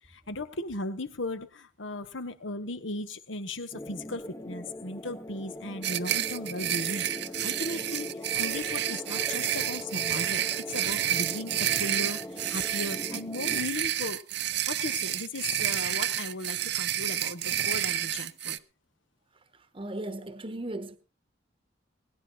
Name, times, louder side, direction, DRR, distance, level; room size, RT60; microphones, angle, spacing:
voice 1, 0.1-7.1 7.4-12.2 12.5-14.2 14.7-18.6, left 2 dB, 80° left, 1.4 m, -37 dB
sound 1, 3.7-13.6, left 1 dB, 15° left, 0.9 m, -41 dB
sound 2, 5.8-18.6, right 11 dB, 60° right, 0.8 m, -30 dB
voice 2, 19.7-21.0, right 1 dB, 30° right, 1.1 m, -36 dB
21.0 x 10.5 x 4.4 m
head